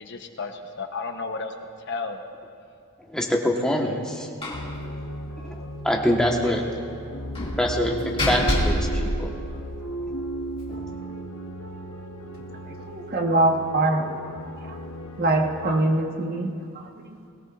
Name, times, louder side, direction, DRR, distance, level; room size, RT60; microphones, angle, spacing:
voice 1, 0.0-1.5 1.9-2.2 6.5-6.6, left 4 dB, 55° left, 5 dB, 0.9 m, -33 dB
voice 2, 3.1-4.3 5.5-6.6 7.6-8.0 8.3-9.3, equal, 5° left, -1 dB, 1.3 m, -24 dB
Slam, 4.4-4.7 5.0-5.1 5.4-5.6 7.3-9.9, left 1 dB, 25° left, 2.3 m, -27 dB
sound 1, 4.5-15.8, right 1 dB, 90° left, 1.0 m, -35 dB
voice 3, 12.7-14.0 14.6-14.8 15.2-17.3, right 2 dB, 45° right, 2 dB, 1.3 m, -24 dB
22.5 x 17.0 x 2.5 m, 2.3 s
head